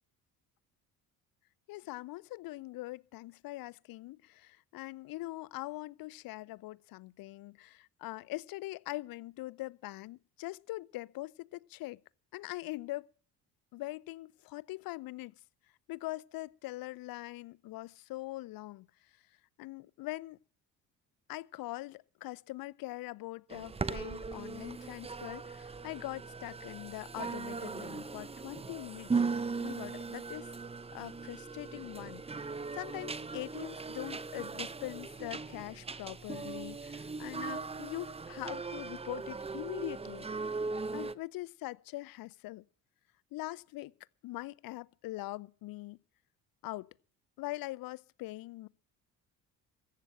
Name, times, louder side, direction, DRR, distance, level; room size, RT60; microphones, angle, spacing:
voice 1, 1.7-12.0 12.3-13.1 13.7-15.3 15.9-18.9 19.6-20.4 21.3-30.5 30.9-40.3 40.9-42.6 43.3-43.9 44.2-46.0 46.6-46.9 47.4-48.7, left 18 dB, 70° left, 0.7 m, -42 dB
sound 1, 23.5-41.2, right 4 dB, 15° right, 0.6 m, -39 dB
14.5 x 8.6 x 8.9 m
supercardioid pair, 75°, 37 cm